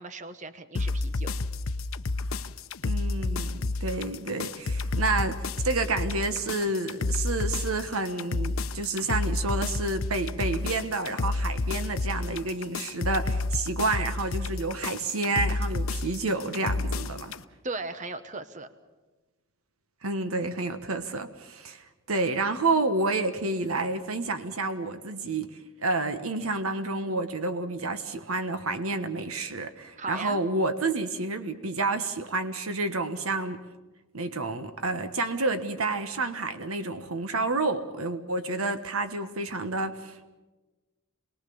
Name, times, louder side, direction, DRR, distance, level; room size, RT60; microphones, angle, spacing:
voice 1, 0.0-1.3 17.6-18.7 30.0-30.4, right 3 dB, 35° right, 11 dB, 1.1 m, -37 dB
sound 1, 0.7-17.4, left 3 dB, 75° left, 0.7 m, -30 dB
voice 2, 2.8-17.4 20.0-33.6 34.1-40.3, right 3 dB, 85° right, 9 dB, 1.4 m, -29 dB
27.5 x 20.5 x 7.1 m, 1.2 s
head